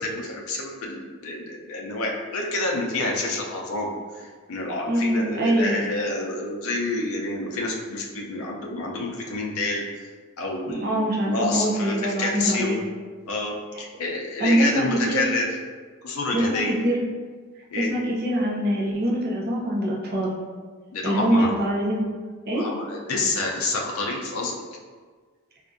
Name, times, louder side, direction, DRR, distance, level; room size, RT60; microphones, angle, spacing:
voice 1, 0.0-9.8 10.4-12.8 13.3-15.5 16.0-16.7 17.7-17.9 20.9-21.5 22.5-24.6, left 2 dB, 85° left, -1 dB, 0.5 m, -28 dB
voice 2, 4.9-5.9 10.7-12.8 14.4-15.3 16.3-17.0 17.7-20.3 21.0-22.0 22.5-22.6, right 1 dB, 45° right, -3 dB, 0.6 m, -24 dB
4.3 x 2.4 x 2.5 m, 1.5 s
head